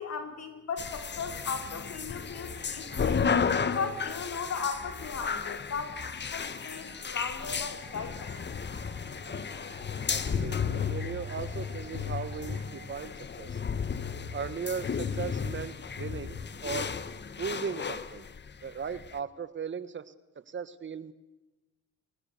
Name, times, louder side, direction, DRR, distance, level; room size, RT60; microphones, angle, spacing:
voice 1, 0.0-3.3 3.6-8.4, left 5 dB, 55° left, 6 dB, 4.2 m, -37 dB
sound 1, 0.8-19.2, left 6 dB, 35° left, 1.4 m, -33 dB
sound 2, 2.3-13.0, right 7 dB, 75° right, 5.7 m, -55 dB
voice 2, 10.1-13.1 13.4-13.6 14.3-16.4 16.6-16.9 17.4-18.3 18.6-20.1 20.5-21.1, right 6 dB, 40° right, 14 dB, 1.4 m, -37 dB
29.5 x 22.5 x 6.7 m, 1.0 s
cardioid pair, 90°, 30 cm